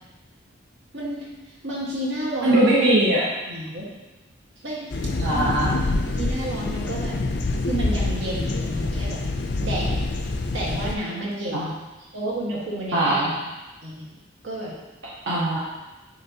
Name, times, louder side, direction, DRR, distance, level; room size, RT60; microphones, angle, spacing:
voice 1, 0.9-1.3 1.6-2.6 3.5-3.9 4.6-4.9 5.3-5.5 6.1-7.2 7.7-9.2 9.6-10.0 10.5-11.7 12.1-13.5 13.8-14.1 14.4-14.8, right 1 dB, 85° right, -4 dB, 1.5 m, -30 dB
voice 2, 2.4-3.3 5.2-5.7 11.5-11.6 12.9-13.3 15.3-15.6, right 1 dB, 65° right, -7 dB, 1.0 m, -20 dB
sound 1, 4.9-11.0, left 2 dB, 60° left, 0.5 m, -26 dB
9.7 x 3.4 x 2.8 m, 1.1 s
head